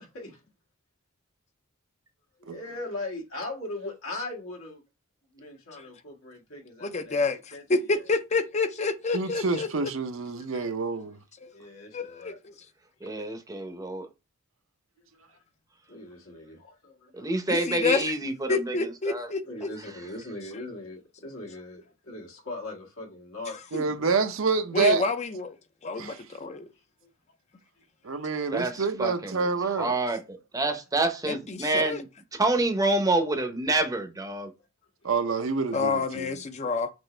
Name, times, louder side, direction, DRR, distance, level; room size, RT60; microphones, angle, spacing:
voice 1, 2.4-4.8 5.3-7.6 7.9-8.1 11.5-12.4 15.0-15.4 15.9-17.2 19.4-24.0 26.5-26.6 27.0-27.1, left 2 dB, 75° left, 1.7 m, -40 dB
voice 2, 6.8-9.7 11.4-11.5 11.9-12.5 17.5-18.0 18.5-19.4 23.7-23.8 24.7-25.6 25.8-26.7 31.3-32.0 35.7-36.9, left 4 dB, 35° left, 0.6 m, -28 dB
voice 3, 9.1-11.2 23.7-25.0 25.9-26.2 28.0-29.9 35.0-36.4, right 4 dB, 65° right, 0.7 m, -27 dB
voice 4, 13.0-14.1 17.1-19.3 28.5-29.5 29.8-32.1 32.3-34.5, right 2 dB, 15° right, 0.7 m, -28 dB
6.1 x 2.6 x 3.3 m
head